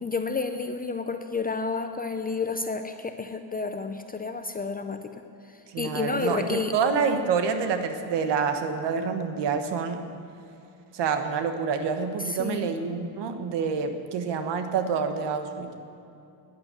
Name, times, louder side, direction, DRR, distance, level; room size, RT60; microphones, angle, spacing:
voice 1, 0.0-5.2 5.5-6.7 12.2-12.7, left 4 dB, 20° left, 7 dB, 0.5 m, -31 dB
voice 2, 5.7-10.0 10.9-15.7, right 5 dB, 60° right, 7 dB, 1.3 m, -27 dB
11.5 x 10.5 x 8.3 m, 2.7 s
cardioid pair, 130°, 47 cm